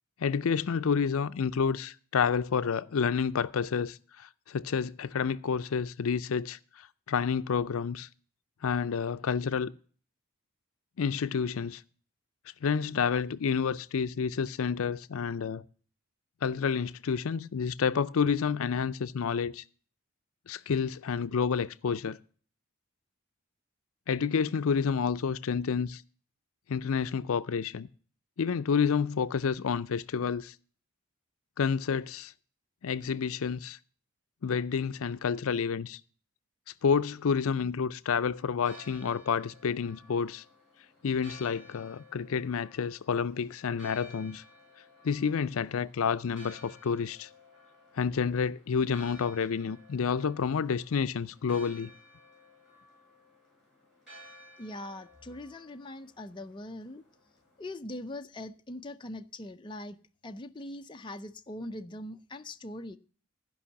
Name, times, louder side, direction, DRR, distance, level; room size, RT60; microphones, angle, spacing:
voice 1, 0.2-8.1 8.6-9.7 11.0-11.8 12.6-15.6 16.4-19.6 20.5-22.2 24.1-26.0 26.7-27.9 28.4-30.5 31.6-32.3 32.8-33.8 34.4-36.0 36.8-40.4 41.0-44.4 45.0-47.3 48.0-51.9, left 6 dB, 75° left, 0.5 m, -29 dB
Church bell, 38.3-57.7, left 1 dB, ahead, 7.7 m, -55 dB
voice 2, 54.6-57.0 57.6-60.0 60.2-63.0, left 1 dB, 20° left, 0.5 m, -41 dB
14.0 x 5.4 x 7.0 m
head